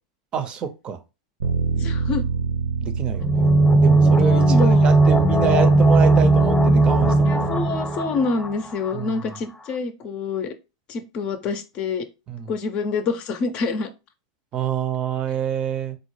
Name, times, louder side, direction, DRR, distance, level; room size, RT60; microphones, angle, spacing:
voice 1, 0.3-1.0 2.8-7.5 8.9-9.3 12.3-12.5 14.5-16.0, right 7 dB, 35° right, 0.5 m, -27 dB
Bass guitar, 1.4-7.7, right 5 dB, 80° right, 0.8 m, -28 dB
voice 2, 1.7-2.2 4.0-4.9 7.3-10.5 10.9-12.1 12.5-13.9, left 4 dB, 45° left, 0.5 m, -27 dB
sound 1, 3.2-8.9 9.2-9.3, right 2 dB, 15° left, 0.8 m, -17 dB
4.0 x 2.1 x 3.1 m
hypercardioid pair, 105°, 3 cm